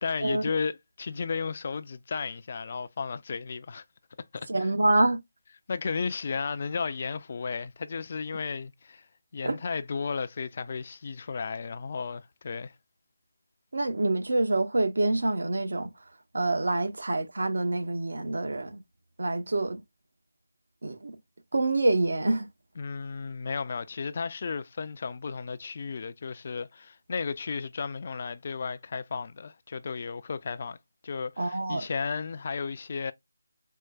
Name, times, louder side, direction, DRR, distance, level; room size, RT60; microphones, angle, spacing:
voice 1, 0.0-3.8 4.3-4.7 5.7-9.1 9.3-12.7 22.8-30.8 31.0-33.1, left 5 dB, 40° left, 0.4 m, -34 dB
voice 2, 4.5-5.2 9.4-9.6 13.7-15.9 16.3-18.8 19.2-19.8 20.8-21.2 21.5-22.5 31.4-31.8, right 2 dB, 65° right, 1.0 m, -26 dB
4.5 x 2.1 x 2.3 m
figure-of-eight pair, 160°, 0 cm